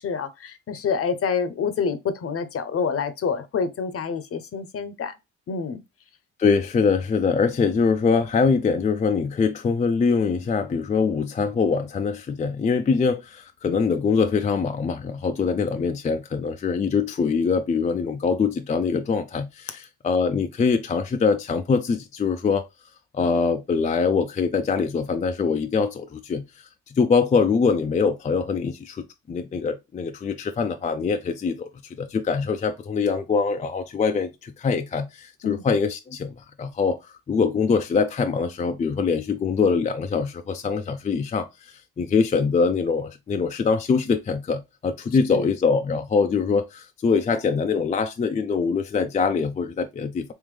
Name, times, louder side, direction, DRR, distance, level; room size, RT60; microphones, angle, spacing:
voice 1, 0.0-5.1 5.5-5.8 35.4-35.6 45.3-45.5, left 6 dB, 50° left, 0.7 m, -27 dB
voice 2, 6.4-22.7 23.1-50.3, left 5 dB, 25° left, 0.4 m, -23 dB
3.6 x 3.1 x 3.2 m
cardioid pair, 90°, 30 cm